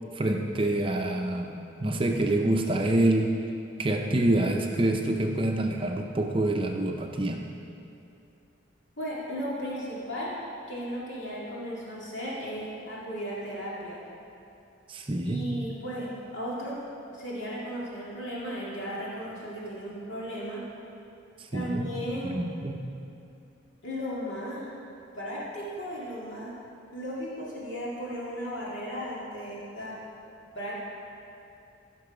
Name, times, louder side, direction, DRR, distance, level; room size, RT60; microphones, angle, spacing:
voice 1, 0.1-3.3 3.8-7.4 14.9-15.5 21.4-21.9 22.2-22.8, right 1 dB, 25° right, 2 dB, 0.6 m, -26 dB
voice 2, 9.0-10.4 10.7-14.0 15.2-16.8 17.1-20.6 21.5-22.4 23.8-24.7 25.1-26.5 26.9-30.0 30.5-30.7, equal, 75° left, -6 dB, 2.2 m, -35 dB
15.5 x 6.1 x 4.9 m, 2.6 s
head